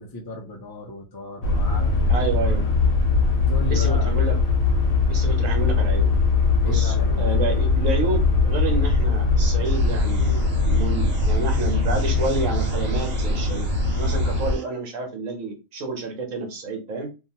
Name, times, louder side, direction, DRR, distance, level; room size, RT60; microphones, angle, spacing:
voice 1, 0.0-2.7 3.3-4.2 6.6-7.3, left 2 dB, 35° left, 0.3 m, -36 dB
sound 1, 1.4-14.5, left 3 dB, 75° left, 1.1 m, -21 dB
voice 2, 2.1-2.7 3.7-4.4 5.1-6.1 6.6-13.7 14.0-17.1, right 3 dB, 70° right, 1.2 m, -29 dB
sound 2, 9.6-14.6, right 2 dB, 55° right, 0.8 m, -40 dB
2.8 x 2.3 x 2.7 m
omnidirectional pair, 1.5 m